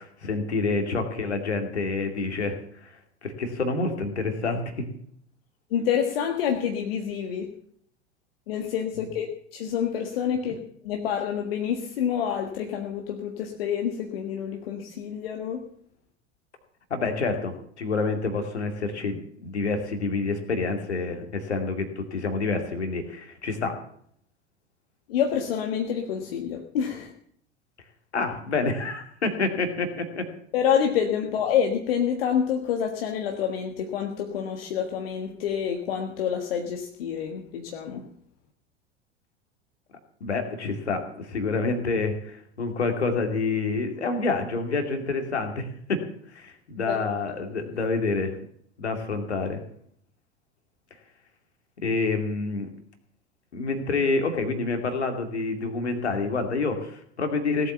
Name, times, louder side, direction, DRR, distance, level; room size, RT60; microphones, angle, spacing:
voice 1, 0.0-2.9 3.2-4.9 16.9-23.8 28.1-30.2 40.2-46.0 46.3-48.4 48.8-49.6 51.8-52.7 53.5-57.7, left 3 dB, 75° left, 5 dB, 2.7 m, -28 dB
voice 2, 5.7-7.5 8.5-15.7 25.1-27.1 30.5-38.1 46.8-47.0, left 8 dB, 55° left, 3 dB, 1.6 m, -27 dB
18.0 x 8.2 x 6.9 m, 0.65 s
figure-of-eight pair, 85°, 34 cm